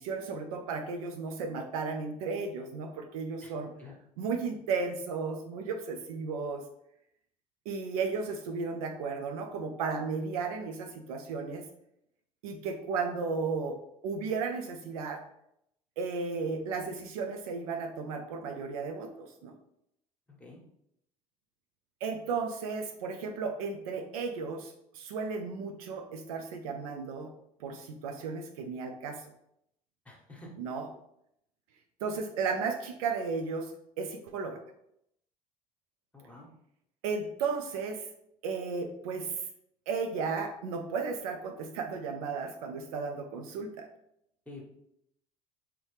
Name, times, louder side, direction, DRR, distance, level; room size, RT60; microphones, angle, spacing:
voice 1, 0.0-3.7 4.2-6.6 7.7-11.6 12.4-15.2 16.0-19.5 22.0-27.3 27.6-29.2 30.6-30.9 32.0-33.7 34.0-34.6 37.0-38.1 38.4-39.4 39.9-43.9, right 4 dB, 70° right, 4 dB, 0.5 m, -34 dB
voice 2, 20.3-20.6 30.0-30.5 36.1-36.5 44.5-44.6, left 2 dB, 5° left, -1 dB, 1.4 m, -48 dB
3.8 x 2.9 x 3.2 m, 0.76 s
figure-of-eight pair, 60°, 19 cm